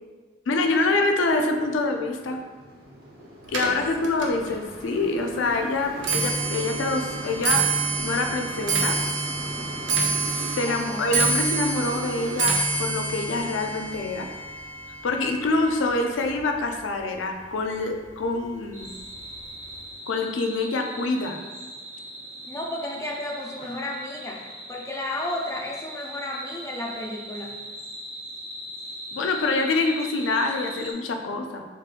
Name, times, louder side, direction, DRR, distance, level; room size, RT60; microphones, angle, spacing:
voice 1, 0.5-2.4 3.5-7.7 8.0-9.0 10.3-14.3 15.0-18.9 20.1-21.4 29.1-31.6, left 3 dB, 85° left, 4 dB, 0.4 m, -26 dB
sound 1, 0.6-10.5, equal, 50° right, 1.0 m, -43 dB
Clock, 3.5-16.8 17.1-17.6 18.4-18.5 18.8-19.2 19.5-19.6, right 4 dB, 70° right, 0.6 m, -28 dB
voice 2, 10.6-11.1 22.5-27.5, left 1 dB, 15° left, -1 dB, 0.4 m, -33 dB
sound 2, 18.7-30.9, equal, 15° right, 1.2 m, -40 dB
3.5 x 3.3 x 2.4 m, 1.4 s
head